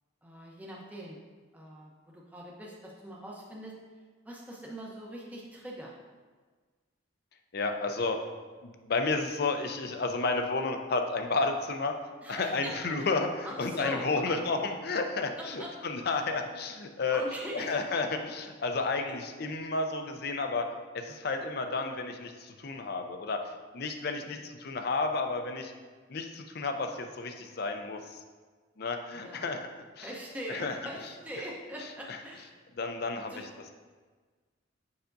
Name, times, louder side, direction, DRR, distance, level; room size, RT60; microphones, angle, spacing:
voice 1, 0.2-1.2 1.5-3.8 4.2-5.9 12.2-13.2 13.4-14.4 15.4-15.7 16.0-16.3 17.1-17.8 19.1-19.2 24.1-24.5 29.1-29.5 30.0-32.5 33.3-33.5, equal, 10° right, -3 dB, 0.7 m, -42 dB
voice 2, 7.5-8.2 8.6-11.9 12.3-17.2 17.5-20.7 20.9-23.4 23.7-25.7 26.1-28.2 28.8-29.7 30.0-30.1 30.5-30.8 32.8-33.5, left 3 dB, 55° left, 5 dB, 0.5 m, -31 dB
6.8 x 5.7 x 2.6 m, 1.4 s
head